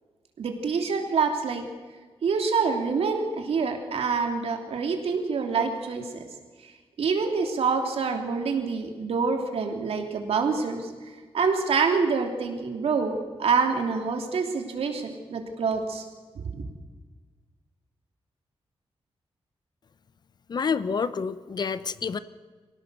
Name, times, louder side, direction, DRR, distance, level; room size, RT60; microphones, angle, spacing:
voice 1, 0.4-1.6 2.2-6.3 6.6-6.7 7.0-10.9 11.3-16.0 16.5-16.6, right 5 dB, 75° right, 3 dB, 3.0 m, -26 dB
voice 2, 20.5-22.2, left 5 dB, 45° left, 14 dB, 0.7 m, -28 dB
25.0 x 17.0 x 6.9 m, 1.4 s
wide cardioid pair, 160°, 10 cm